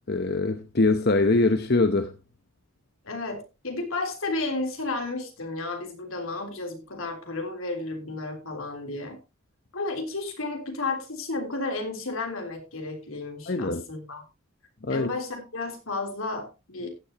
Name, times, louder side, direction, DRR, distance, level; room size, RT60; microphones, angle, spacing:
voice 1, 0.1-2.1 13.5-13.8 14.8-15.1, left 3 dB, 50° left, 0.9 m, -23 dB
voice 2, 3.0-9.2 9.7-14.2 14.9-16.9, left 3 dB, 75° left, 3.5 m, -32 dB
15.0 x 10.5 x 2.9 m
head